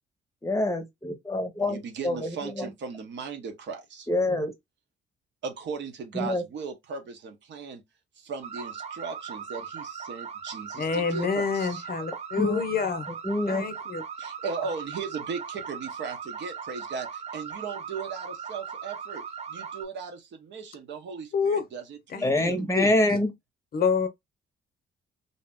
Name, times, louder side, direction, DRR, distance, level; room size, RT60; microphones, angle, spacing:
voice 1, 0.4-2.7 4.1-4.5 6.1-6.4 12.4-12.6 13.2-13.6 22.2-23.3, left 1 dB, 15° left, 0.8 m, -26 dB
voice 2, 1.7-4.1 5.4-7.8 8.2-11.8 14.2-19.2 19.5-22.7, right 5 dB, 65° right, 0.9 m, -37 dB
sound 1, 8.4-19.8, right 7 dB, 30° right, 0.6 m, -39 dB
voice 3, 10.8-13.1 13.5-14.0 21.3-21.6 22.1-22.9 23.7-24.1, left 6 dB, 50° left, 0.6 m, -28 dB
2.7 x 2.1 x 3.4 m
cardioid pair, 90°, 20 cm